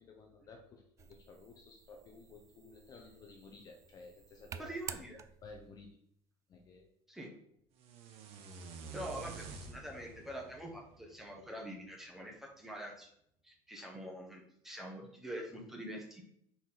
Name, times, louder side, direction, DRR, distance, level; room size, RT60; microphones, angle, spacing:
voice 1, 0.0-4.7 5.4-5.9 6.5-6.9, left 3 dB, 35° left, 3 dB, 0.8 m, -54 dB
sound 1, 1.0-5.7, right 7 dB, 30° right, 0.3 m, -51 dB
voice 2, 4.6-5.2 7.1-7.3 8.9-13.1 13.4-16.2, equal, 5° right, 0 dB, 1.3 m, -45 dB
sound 2, 7.8-11.9, right 5 dB, 60° right, 1.0 m, -49 dB
4.6 x 4.3 x 5.6 m, 0.69 s
cardioid pair, 150°, 11 cm